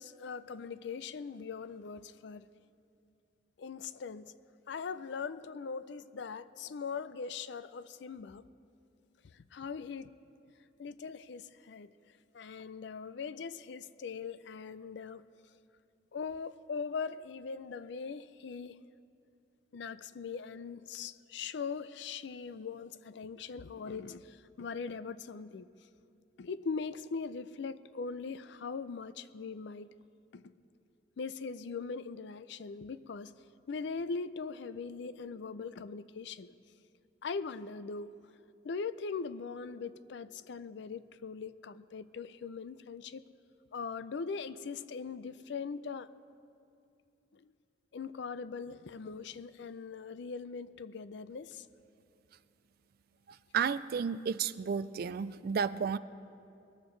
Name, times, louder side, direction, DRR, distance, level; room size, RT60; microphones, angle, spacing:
voice 1, 0.0-2.5 3.6-4.3 4.7-8.5 9.2-10.1 10.8-11.9 12.3-15.2 16.1-18.8 19.7-25.7 26.4-29.9 30.3-30.5 31.2-33.3 33.7-36.5 37.2-38.1 38.6-43.2 43.7-46.1 47.3-47.5 47.9-51.7, left 5 dB, 65° left, 15 dB, 0.4 m, -41 dB
voice 2, 53.5-56.0, right 6 dB, 55° right, 16 dB, 0.3 m, -32 dB
22.0 x 14.0 x 3.2 m, 2.5 s
head